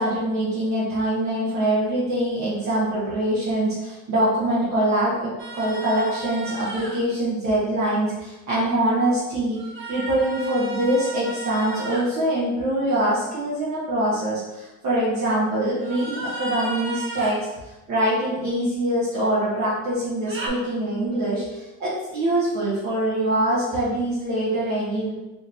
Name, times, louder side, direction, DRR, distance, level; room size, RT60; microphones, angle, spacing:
voice 1, 0.0-9.6 9.9-17.4 17.9-25.1, right 1 dB, 65° right, -9 dB, 1.3 m, -24 dB
sound 1, 5.4-7.0 9.5-12.0 15.8-17.4 20.2-20.5, right 2 dB, 40° right, 1.0 m, -34 dB
4.9 x 2.9 x 2.8 m, 1.0 s
cardioid pair, 90°, 30 cm